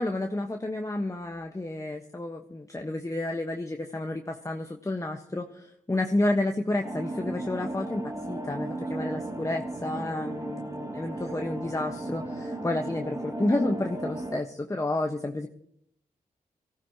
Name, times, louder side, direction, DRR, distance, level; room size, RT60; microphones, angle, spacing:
voice 1, 0.0-15.5, left 2 dB, 20° left, 3 dB, 1.2 m, -30 dB
sound 1, 6.8-14.4, right 1 dB, 25° right, 2.5 m, -35 dB
22.5 x 15.0 x 2.9 m, 0.67 s
supercardioid pair, 40°, 15 cm